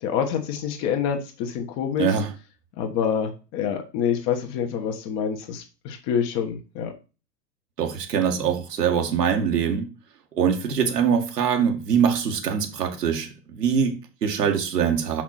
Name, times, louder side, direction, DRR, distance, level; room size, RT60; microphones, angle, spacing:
voice 1, 0.0-2.1 2.8-6.9, left 8 dB, 35° left, 1.5 m, -27 dB
voice 2, 2.0-2.3 7.8-9.9 10.4-15.2, right 7 dB, 70° right, 2.0 m, -23 dB
6.0 x 5.9 x 4.3 m
figure-of-eight pair, 110°, 49 cm